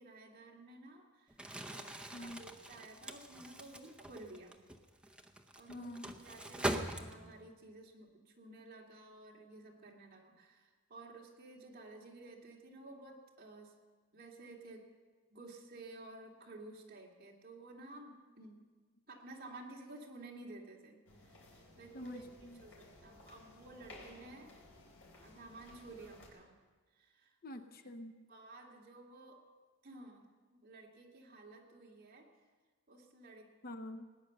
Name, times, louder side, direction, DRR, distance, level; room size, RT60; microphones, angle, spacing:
voice 1, 0.0-4.6 5.6-5.9 6.2-13.7 14.1-14.8 15.3-18.6 19.1-21.5 21.8-22.3 22.6-24.6 25.2-26.5 26.9-27.4 27.8-29.4 29.8-32.3 32.9-33.5, right 2 dB, 45° right, -2 dB, 2.4 m, -53 dB
Crumpling crinkling, 1.3-7.5, right 1 dB, 5° right, 0.7 m, -42 dB
voice 2, 2.1-2.4 5.7-6.1 21.9-22.6 27.4-28.2 33.6-34.1, left 1 dB, 45° left, 9 dB, 0.7 m, -46 dB
sound 1, 21.1-26.3, left 2 dB, 70° left, 3.9 m, -58 dB
18.5 x 9.6 x 6.7 m, 1.4 s
head